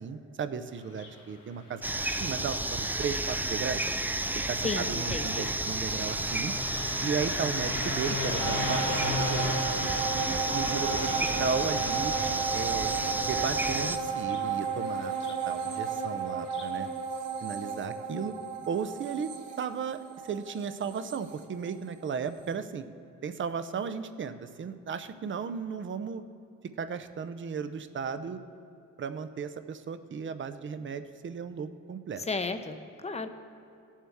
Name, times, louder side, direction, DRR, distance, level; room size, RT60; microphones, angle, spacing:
voice 1, 0.0-3.8 4.3-6.5 7.0-9.5 10.1-11.1 11.4-12.1 12.5-12.9 13.2-15.1 15.5-16.9 17.4-18.3 18.7-19.3 19.6-22.9 23.2-26.2 26.8-28.4 29.0-32.2, right 6 dB, 40° right, 11 dB, 0.6 m, -35 dB
Car passing by, 0.8-16.8, left 3 dB, 85° left, 2.0 m, -39 dB
sound 1, 1.8-14.0, right 2 dB, 5° right, 0.3 m, -31 dB
voice 2, 4.6-5.5 32.3-32.8 33.0-33.3, left 3 dB, 20° left, 8 dB, 0.8 m, -33 dB
sound 2, 8.4-22.1 22.5-22.6, right 6 dB, 75° right, 1.3 m, -34 dB
17.0 x 7.3 x 3.6 m, 2.7 s
cardioid pair, 90°, 30 cm